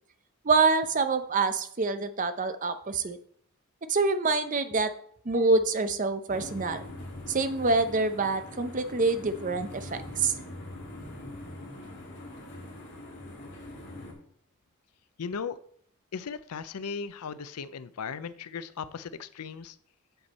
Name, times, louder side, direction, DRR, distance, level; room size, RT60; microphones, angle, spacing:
voice 1, 0.4-3.2 3.9-4.9 5.2-6.8 7.3-10.3, right 3 dB, 35° right, 10 dB, 0.6 m, -26 dB
sound 1, 6.3-14.1, left 1 dB, 50° left, 2.4 m, -43 dB
voice 2, 15.2-15.6 16.1-19.7, left 6 dB, 90° left, 15 dB, 0.5 m, -37 dB
8.0 x 7.1 x 4.1 m, 0.62 s
head